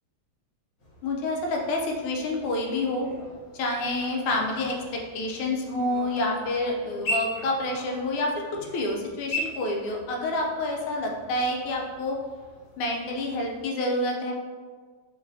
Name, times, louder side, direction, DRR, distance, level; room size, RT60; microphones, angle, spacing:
sound 1, 0.8-13.6, equal, 45° left, 1.4 m, -40 dB
voice 1, 1.0-3.1 3.5-8.3 8.6-12.2 12.8-14.3, left 2 dB, 90° left, 1 dB, 1.6 m, -28 dB
5.9 x 3.1 x 2.7 m, 1.5 s
omnidirectional pair, 2.3 m